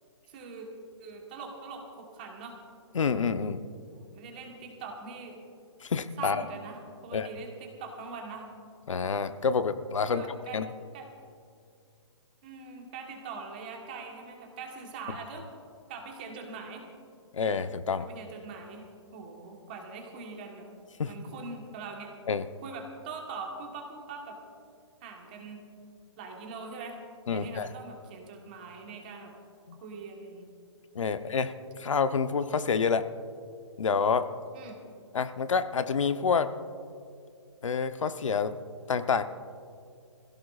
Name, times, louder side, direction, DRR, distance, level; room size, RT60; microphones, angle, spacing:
voice 1, 0.3-0.7 1.0-2.6 3.9-5.4 6.2-8.5 10.1-11.1 12.4-15.5 15.9-16.8 18.0-18.8 19.1-20.6 21.0-22.1 22.6-24.4 25.0-25.6 26.2-27.0 27.3-29.3 29.8-30.5 34.5-34.8, right 4 dB, 20° right, 2 dB, 1.2 m, -42 dB
voice 2, 2.9-3.6 5.8-6.4 7.1-7.3 8.9-10.2 10.5-10.7 17.3-18.0 21.0-21.1 22.3-22.5 27.3-27.7 29.7-29.8 30.9-33.1 33.8-34.3 35.1-36.5 37.6-38.5 38.9-39.2, left 5 dB, 90° left, 10 dB, 0.8 m, -28 dB
25.5 x 16.0 x 2.4 m, 2.3 s
hypercardioid pair, 180°, 16 cm